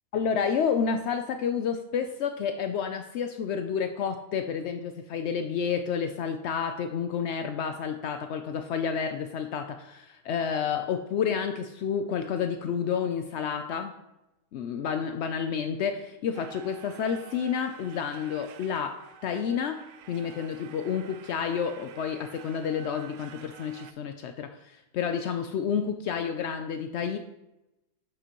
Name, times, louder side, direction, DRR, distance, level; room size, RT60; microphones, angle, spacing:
voice 1, 0.1-14.0 14.5-27.2, left 7 dB, 70° left, 7 dB, 0.6 m, -30 dB
sound 1, 16.3-23.9, right 9 dB, 70° right, 0.8 m, -49 dB
11.0 x 6.7 x 3.0 m, 0.94 s
omnidirectional pair, 1.7 m